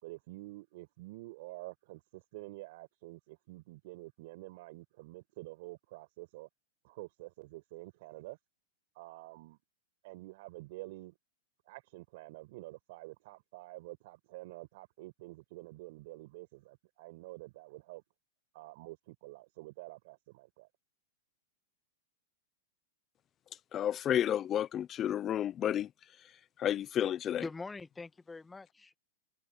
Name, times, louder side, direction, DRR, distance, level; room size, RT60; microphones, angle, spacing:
voice 1, 0.0-6.5 6.8-8.4 9.0-9.6 10.0-11.1 11.7-18.0 18.5-20.7, right 21 dB, 60° right, 5.6 m, -48 dB
voice 2, 23.7-25.9 26.6-27.4, left 10 dB, 30° left, 0.6 m, -31 dB
voice 3, 27.4-29.0, left 3 dB, 10° left, 1.9 m, -43 dB
hypercardioid pair, 130°, 0 cm